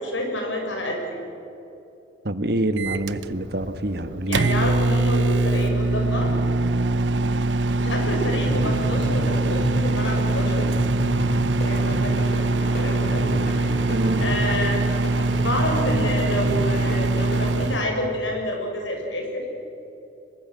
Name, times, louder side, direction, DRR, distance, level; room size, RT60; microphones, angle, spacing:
voice 1, 0.0-1.2 4.3-6.3 7.8-10.7 11.6-12.3 12.6-13.9 14.2-14.8 15.4-19.4, left 1 dB, 85° left, 2 dB, 5.9 m, -28 dB
voice 2, 2.2-4.5 13.9-14.3, right 1 dB, 60° right, 10 dB, 1.4 m, -26 dB
Microwave oven, 2.8-17.9, right 2 dB, 75° right, 0.7 m, -23 dB
sound 1, 8.5-18.0, right 1 dB, 55° left, 5.4 m, -31 dB
24.5 x 21.5 x 7.6 m, 2.9 s
head